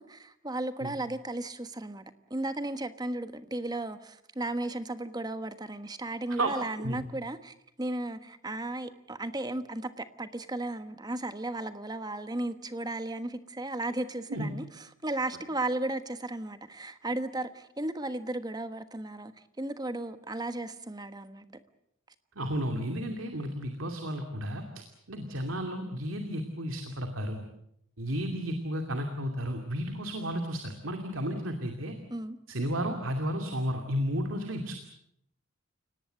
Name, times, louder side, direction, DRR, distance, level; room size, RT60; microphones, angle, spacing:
voice 1, 0.0-2.0 2.3-19.3 19.6-21.4 31.3-31.4 32.1-32.4, right 2 dB, 20° right, 1.3 m, -35 dB
voice 2, 22.4-27.4 28.0-31.9 32.5-34.8, equal, 90° right, 2.6 m, -33 dB
29.5 x 18.5 x 7.7 m
head